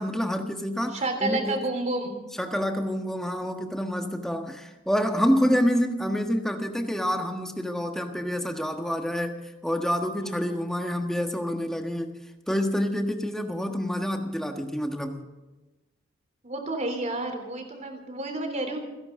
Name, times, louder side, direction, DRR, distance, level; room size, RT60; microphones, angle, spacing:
voice 1, 0.0-1.6 2.0-12.1 12.5-15.3, equal, 5° left, 4 dB, 1.4 m, -27 dB
voice 2, 0.9-2.2 10.2-10.6 16.4-18.8, right 2 dB, 40° right, 5 dB, 3.4 m, -30 dB
29.0 x 11.0 x 3.8 m, 1.1 s
head